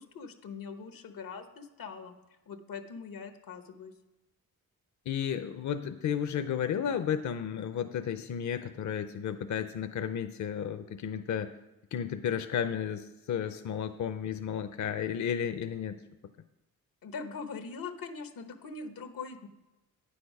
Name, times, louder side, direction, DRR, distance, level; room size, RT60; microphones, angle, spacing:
voice 1, 0.0-2.1 2.5-3.9 17.0-19.5, left 5 dB, 90° left, 8 dB, 0.9 m, -42 dB
voice 2, 5.1-11.5 11.9-16.0, left 8 dB, 60° left, 9 dB, 0.5 m, -33 dB
9.3 x 6.7 x 5.3 m, 1.0 s
cardioid pair, 75°, 33 cm